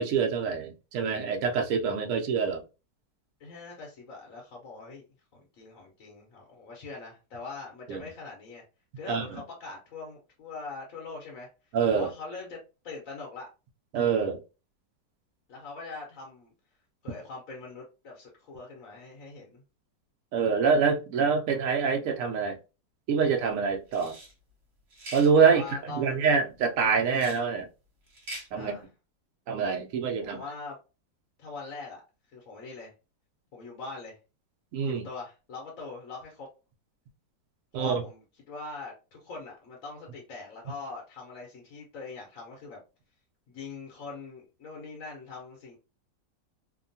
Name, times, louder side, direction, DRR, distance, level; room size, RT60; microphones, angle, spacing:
voice 1, 0.0-2.6 7.9-8.0 9.1-9.4 11.7-12.1 13.9-14.4 20.3-22.6 23.1-24.2 25.1-27.7 28.5-28.8 29.5-30.4 34.7-35.1 37.7-37.9, right 6 dB, 70° right, 0.8 m, -25 dB
voice 2, 3.4-5.0 5.3-8.6 9.0-12.6 12.8-13.5 15.5-16.5 17.0-19.6 25.5-26.2 28.5-28.9 30.3-30.8 31.4-32.0 32.3-32.9 33.5-34.2 34.9-36.5 37.8-38.2 38.5-42.8 43.5-45.8, left 3 dB, 60° left, 1.0 m, -42 dB
sound 1, 23.9-24.3 24.9-25.3 27.1-27.4 28.1-28.5, right 1 dB, 45° right, 1.1 m, -42 dB
2.8 x 2.2 x 2.6 m
omnidirectional pair, 1.9 m